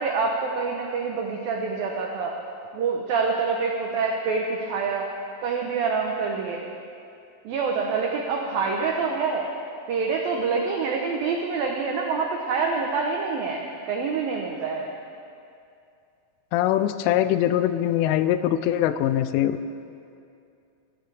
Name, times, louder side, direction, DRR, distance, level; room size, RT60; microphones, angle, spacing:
voice 1, 0.0-2.4 2.7-5.1 5.4-6.7 7.4-9.5 9.9-14.9, right 4 dB, 90° right, 0 dB, 2.0 m, -26 dB
voice 2, 16.5-19.6, left 12 dB, 85° left, 11 dB, 3.1 m, -22 dB
23.0 x 14.5 x 3.4 m, 2.5 s
omnidirectional pair, 5.6 m